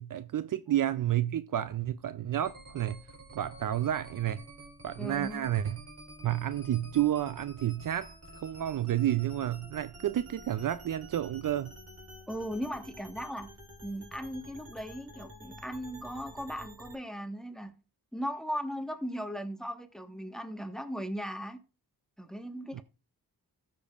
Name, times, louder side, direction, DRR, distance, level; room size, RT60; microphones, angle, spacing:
voice 1, 0.0-3.0 3.3-4.4 4.8-5.8 6.2-11.7 22.7-22.8, right 12 dB, 55° right, 0.5 m, -30 dB
sound 1, 2.4-17.0, right 1 dB, 40° right, 4.1 m, -50 dB
voice 2, 5.0-5.5 12.3-13.5 13.8-17.7 18.1-21.6 22.2-22.8, equal, ahead, 1.3 m, -37 dB
14.5 x 6.8 x 2.4 m
cardioid pair, 60°, 39 cm